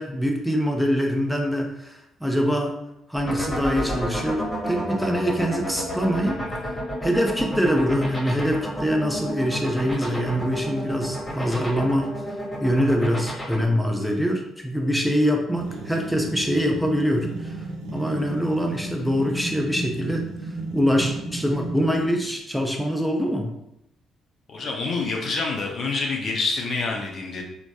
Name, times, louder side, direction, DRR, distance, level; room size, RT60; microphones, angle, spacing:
voice 1, 0.0-2.7 3.1-6.4 7.0-12.1 12.6-17.5 17.9-20.2 20.7-23.5, equal, ahead, 1 dB, 0.5 m, -24 dB
sound 1, 3.2-13.5, equal, 15° left, 1.1 m, -30 dB
sound 2, 15.5-22.3, right 2 dB, 70° right, 0.4 m, -34 dB
voice 2, 24.5-27.4, left 3 dB, 50° left, 0 dB, 0.5 m, -27 dB
3.1 x 2.1 x 2.7 m, 0.84 s
figure-of-eight pair, 45°, 0 cm